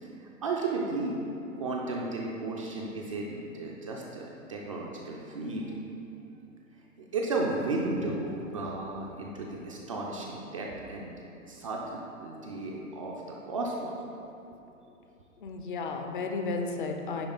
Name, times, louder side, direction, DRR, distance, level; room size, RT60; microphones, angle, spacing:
voice 1, 0.0-1.1 1.6-5.8 7.1-11.1 11.5-14.0, right 2 dB, 25° right, -2 dB, 0.4 m, -34 dB
voice 2, 15.4-17.3, left 3 dB, 40° left, 3 dB, 0.6 m, -33 dB
9.6 x 3.4 x 3.9 m, 2.9 s
figure-of-eight pair, 110°, 41 cm